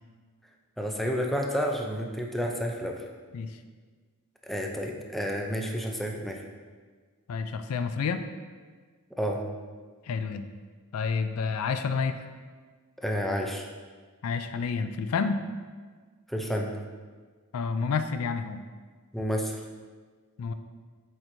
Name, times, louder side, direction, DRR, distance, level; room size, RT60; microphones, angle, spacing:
voice 1, 0.8-3.0 4.4-6.4 9.2-9.4 13.0-13.7 16.3-16.7 19.1-19.6, equal, ahead, 1 dB, 0.4 m, -30 dB
voice 2, 7.3-8.2 10.0-10.5 10.9-12.2 14.2-15.4 17.5-18.6 20.4-20.5, left 5 dB, 70° left, 9 dB, 0.4 m, -29 dB
8.4 x 4.4 x 2.6 m, 1.5 s
head